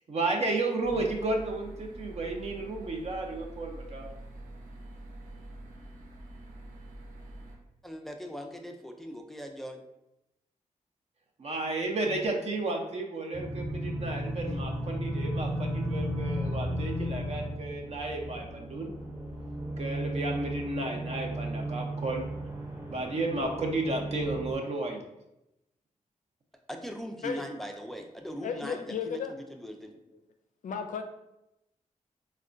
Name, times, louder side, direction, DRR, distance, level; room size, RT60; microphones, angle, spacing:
voice 1, 0.1-4.1 11.4-18.9 19.8-22.2 22.9-25.0, right 2 dB, 50° right, 1 dB, 0.6 m, -32 dB
sound 1, 0.8-7.6, right 1 dB, 90° right, 0.7 m, -46 dB
voice 2, 7.8-9.8 26.7-29.2 29.6-29.9, equal, ahead, 3 dB, 0.4 m, -40 dB
sound 2, 13.3-24.5, right 1 dB, 20° right, 0.8 m, -34 dB
voice 3, 28.4-29.4 30.6-31.0, left 6 dB, 70° left, 6 dB, 0.4 m, -34 dB
4.1 x 2.2 x 2.5 m, 0.88 s
cardioid pair, 90°, 13 cm